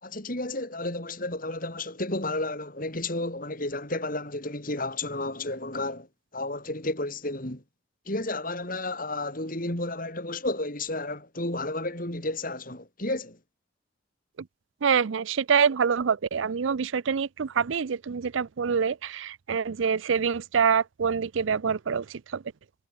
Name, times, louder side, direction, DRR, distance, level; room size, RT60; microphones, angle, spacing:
voice 1, 0.0-6.1 6.3-7.6 8.1-13.4, left 2 dB, 45° left, 4.1 m, -32 dB
voice 2, 14.8-22.4, right 6 dB, 70° right, 0.5 m, -26 dB
head